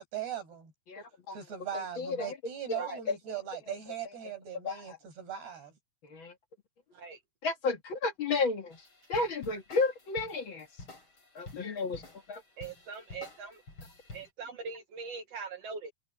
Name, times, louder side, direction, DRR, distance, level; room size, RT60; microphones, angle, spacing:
voice 1, 0.0-0.7 1.3-5.7, right 9 dB, 85° right, 9.1 m, -39 dB
voice 2, 0.9-1.4 2.0-2.3 2.7-3.2 4.6-5.0 6.0-6.3 7.4-8.8 9.1-10.7 11.3-12.0 12.3-12.4, left 3 dB, 45° left, 1.7 m, -32 dB
sound 1, 8.7-14.3, left 2 dB, 30° left, 6.7 m, -50 dB
voice 3, 12.6-13.6 14.1-15.9, right 5 dB, 60° right, 1.7 m, -41 dB
omnidirectional pair, 4.6 m